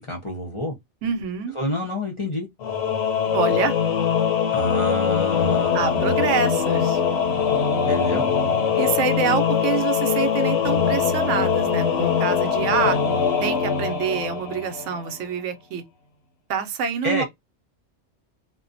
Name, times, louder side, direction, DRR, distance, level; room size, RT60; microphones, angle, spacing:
voice 1, 0.1-0.7 1.5-2.5 4.5-6.2 7.9-8.3 17.0-17.2, left 1 dB, 35° left, 0.6 m, -28 dB
voice 2, 1.0-1.5 3.3-3.8 5.7-7.0 8.8-13.0 13.4-15.8 16.5-17.2, right 7 dB, 85° right, 0.9 m, -26 dB
Singing / Musical instrument, 2.6-15.1, left 7 dB, 70° left, 0.8 m, -22 dB
2.5 x 2.1 x 2.5 m
omnidirectional pair, 1.2 m